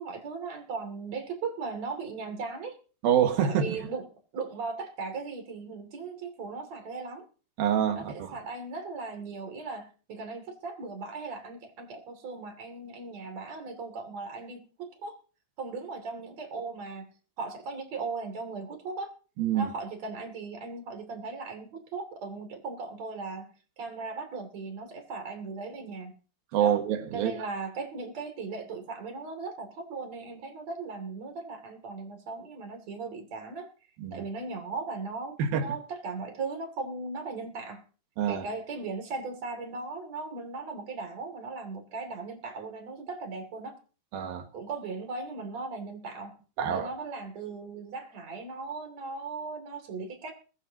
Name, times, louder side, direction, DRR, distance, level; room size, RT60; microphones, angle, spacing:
voice 1, 0.0-2.8 3.5-4.1 4.3-7.2 7.9-15.2 15.6-17.1 17.4-19.1 19.5-23.5 23.8-26.1 26.6-26.8 27.1-33.7 34.1-37.8 38.3-43.8 44.5-46.3 46.6-50.3, right 4 dB, 50° right, 3.8 m, -38 dB
voice 2, 3.0-3.8 7.6-8.3 19.4-19.7 26.5-27.3 34.0-34.2 35.4-35.7 38.2-38.4 44.1-44.5 46.6-46.9, right 9 dB, 85° right, 3.4 m, -26 dB
22.0 x 11.5 x 2.9 m
omnidirectional pair, 4.1 m